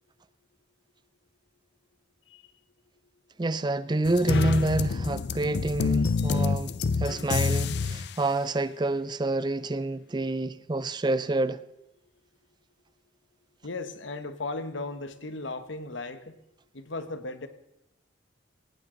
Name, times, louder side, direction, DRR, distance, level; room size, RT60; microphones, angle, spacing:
voice 1, 3.4-11.6, right 2 dB, 25° right, 0.5 m, -28 dB
sound 1, 4.1-8.1, left 4 dB, 60° left, 0.5 m, -27 dB
voice 2, 13.6-16.3 16.7-17.5, left 3 dB, 85° left, 1.2 m, -36 dB
17.5 x 17.5 x 3.9 m
head